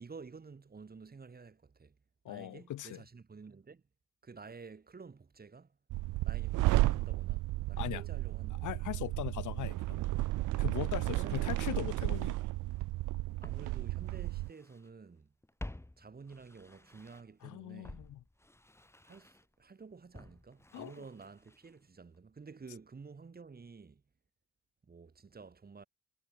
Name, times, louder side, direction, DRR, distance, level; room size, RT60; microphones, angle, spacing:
voice 1, 0.0-2.0 2.3-3.8 4.2-5.8 6.2-8.7 11.1-12.1 13.4-15.3 16.0-18.0 19.0-24.0 24.8-25.8, right 4 dB, 30° right, 3.9 m, -51 dB
voice 2, 2.2-3.0 7.8-8.0 8.6-10.1 10.6-12.3 17.4-18.2 20.7-20.9, left 14 dB, 80° left, 2.1 m, -39 dB
sound 1, 5.9-14.5, right 19 dB, 85° right, 0.6 m, -33 dB
Walk footsteps, 12.7-12.8 13.4-14.9 15.2-17.4 17.8-21.9 22.1-22.2, left 1 dB, 10° left, 3.7 m, -51 dB
cardioid pair, 90°, 30 cm